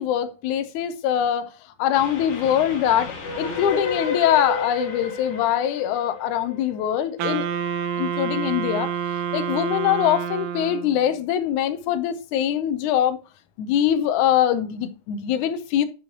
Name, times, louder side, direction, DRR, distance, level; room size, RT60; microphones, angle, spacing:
voice 1, 0.0-1.5 1.8-7.5 8.0-8.9 9.3-13.2 13.6-15.8, left 10 dB, 80° left, 1.9 m, -23 dB
Train, 1.9-7.2, left 4 dB, 60° left, 3.5 m, -31 dB
Wind instrument woodwind instrument, 7.2-11.1, right 7 dB, 75° right, 2.1 m, -28 dB
9.5 x 5.7 x 2.9 m
omnidirectional pair, 4.1 m